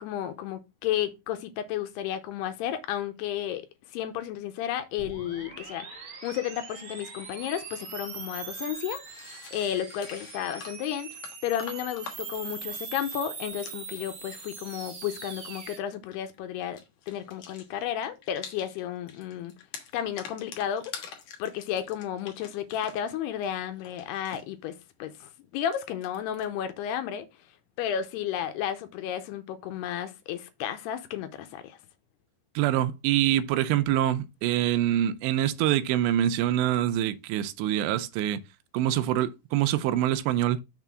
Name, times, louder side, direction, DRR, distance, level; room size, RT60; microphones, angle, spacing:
voice 1, 0.0-3.7 3.9-9.2 9.5-11.1 11.4-16.8 17.1-19.5 19.9-21.1 21.4-27.3 27.8-31.8, left 10 dB, 80° left, 2.7 m, -33 dB
sound 1, 5.0-15.8, right 5 dB, 55° right, 1.4 m, -41 dB
sound 2, 8.6-8.7 9.0-14.6 15.9-16.4 16.6-18.8 19.1-23.1 23.4-24.4 25.6-26.5, left 6 dB, 65° left, 1.9 m, -46 dB
voice 2, 32.6-38.4 38.7-40.6, right 12 dB, 90° right, 2.9 m, -25 dB
6.7 x 3.6 x 6.0 m
omnidirectional pair, 4.9 m